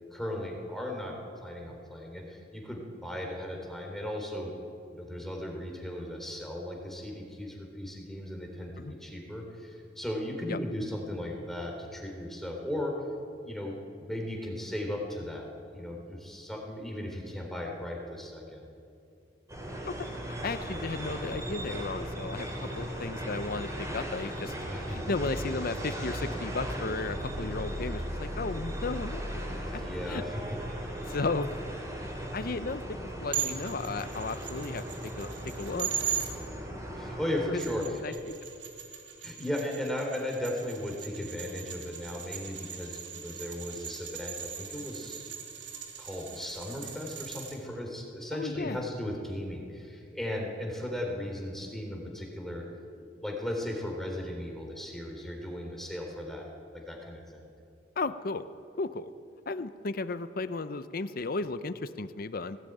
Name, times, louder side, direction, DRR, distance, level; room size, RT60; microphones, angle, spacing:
voice 1, 0.1-4.5 4.9-13.0 13.4-18.6 24.7-25.1 29.6-30.4 30.8-30.9 37.0-38.0 39.2-45.3 46.0-52.6 53.0-56.5 56.7-57.4, left 1 dB, ahead, 0 dB, 3.7 m, -36 dB
sound 1, 19.5-37.5, equal, 20° right, 4.2 m, -37 dB
voice 2, 20.4-24.5 24.9-29.8 30.1-30.2 31.0-31.5 32.0-35.9 37.5-38.3 48.3-48.8 58.0-58.4 58.8-59.1 59.5-62.6, left 3 dB, 55° left, 12 dB, 0.7 m, -35 dB
sound 2, 33.3-36.3 37.4-47.6, right 9 dB, 85° right, 3.1 m, -39 dB
18.0 x 17.5 x 9.2 m, 2.5 s
head